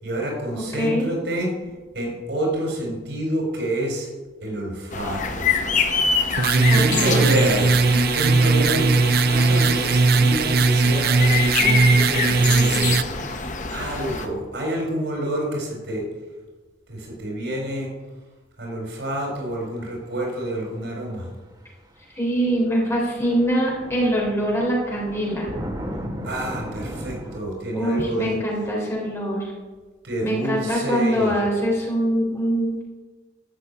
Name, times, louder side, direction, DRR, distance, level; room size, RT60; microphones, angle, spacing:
voice 1, 0.0-1.5 1.9-4.1 4.4-5.5 6.5-13.0 13.7-16.0 16.9-17.9 18.6-21.3 26.2-28.4 30.0-31.3, right 1 dB, 80° right, 0 dB, 4.7 m, -28 dB
voice 2, 0.5-1.1 6.7-7.3 22.1-25.5 27.7-29.5 30.2-32.8, equal, 15° left, -2 dB, 3.4 m, -23 dB
sound 1, 4.9-14.3, left 4 dB, 45° left, 1.1 m, -26 dB
sound 2, 6.4-13.0, right 3 dB, 55° right, 0.5 m, -18 dB
sound 3, 21.3-21.4 22.5-22.6 22.8-27.4, equal, 20° right, 1.4 m, -35 dB
12.5 x 6.8 x 8.3 m, 1.3 s
head